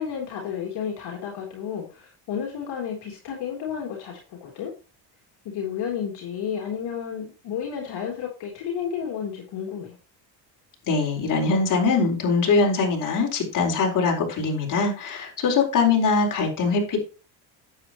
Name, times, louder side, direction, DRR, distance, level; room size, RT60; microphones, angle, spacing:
voice 1, 0.0-4.7 5.4-10.0, left 8 dB, 65° left, -1 dB, 3.4 m, -32 dB
voice 2, 10.9-17.0, left 4 dB, 45° left, 0 dB, 4.4 m, -22 dB
9.9 x 8.6 x 3.0 m, 0.33 s
cardioid pair, 115°, 42 cm